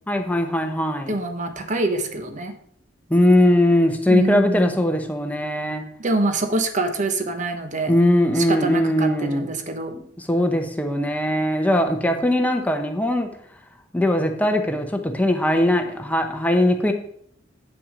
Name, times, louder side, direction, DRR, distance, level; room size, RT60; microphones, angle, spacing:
voice 1, 0.1-1.1 3.1-5.8 7.9-9.5 10.2-13.3 13.9-16.9, left 1 dB, 10° left, 4 dB, 0.8 m, -20 dB
voice 2, 1.1-2.5 4.1-4.8 6.0-8.0 8.3-9.9, right 2 dB, 40° right, 7 dB, 1.0 m, -25 dB
8.4 x 5.9 x 5.1 m, 0.67 s
head